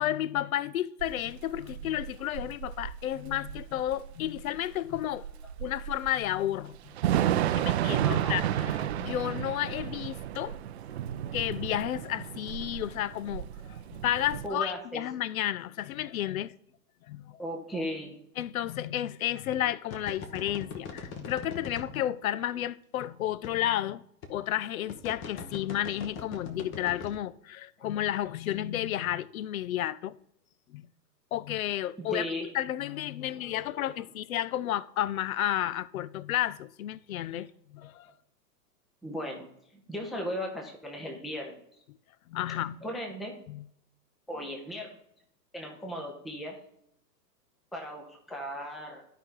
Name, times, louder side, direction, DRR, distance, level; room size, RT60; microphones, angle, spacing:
voice 1, 0.0-5.3 5.6-6.9 7.6-10.6 11.1-16.5 17.1-17.4 18.4-24.0 24.3-30.1 30.7-30.9 31.3-32.3 32.5-38.1 42.3-42.8 43.5-43.6, left 12 dB, 60° left, 0.5 m, -32 dB
Thunder / Rain, 1.0-14.5, right 11 dB, 45° right, 0.5 m, -32 dB
voice 2, 8.0-8.4 14.4-15.0 17.4-18.2 32.0-32.5 33.3-33.8 37.3-37.4 39.0-39.5 39.7-41.6 42.5-43.3 44.3-44.9 45.5-46.6 47.7-49.0, equal, ahead, 0.5 m, -37 dB
sound 1, 19.9-22.0 23.0-23.1 23.4-23.5 24.2-24.4 24.9-27.2, left 5 dB, 25° left, 1.1 m, -40 dB
11.5 x 5.0 x 3.8 m
hypercardioid pair, 115°, 49 cm